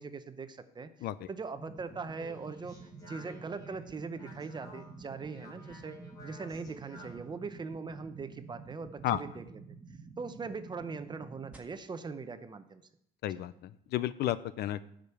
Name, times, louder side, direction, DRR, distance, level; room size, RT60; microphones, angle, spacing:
voice 1, 0.0-9.6 10.2-12.8 13.3-13.4, right 4 dB, 25° right, 11 dB, 0.8 m, -41 dB
sound 1, 1.6-11.6, right 4 dB, 10° right, 1.8 m, -50 dB
Speech, 1.9-7.3, left 1 dB, 20° left, 4.1 m, -53 dB
voice 2, 13.2-14.8, left 13 dB, 70° left, 16 dB, 0.5 m, -32 dB
10.5 x 5.2 x 6.9 m, 0.72 s
cardioid pair, 110°, 17 cm